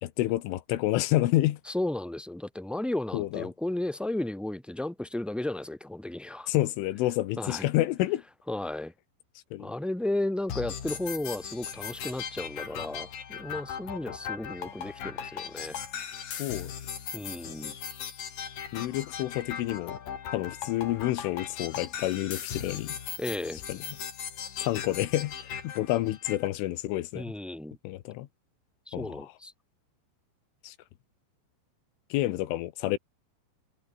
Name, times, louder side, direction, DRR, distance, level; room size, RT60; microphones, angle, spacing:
voice 1, 0.0-1.6 3.1-3.5 6.5-8.2 9.5-9.7 16.4-16.7 18.7-20.0 20.3-23.0 23.7-23.8 24.6-25.3 25.6-27.3 27.9-28.3 28.9-29.3 30.6-30.8 32.1-33.0, left 16 dB, 85° left, 3.8 m, -29 dB
voice 2, 1.6-6.5 7.4-7.7 8.5-8.9 9.6-15.8 17.1-17.7 23.2-23.6 27.1-27.8 28.9-29.5, left 1 dB, ahead, 4.5 m, -34 dB
sound 1, 10.5-26.5, left 8 dB, 50° left, 4.2 m, -38 dB
omnidirectional pair, 5.5 m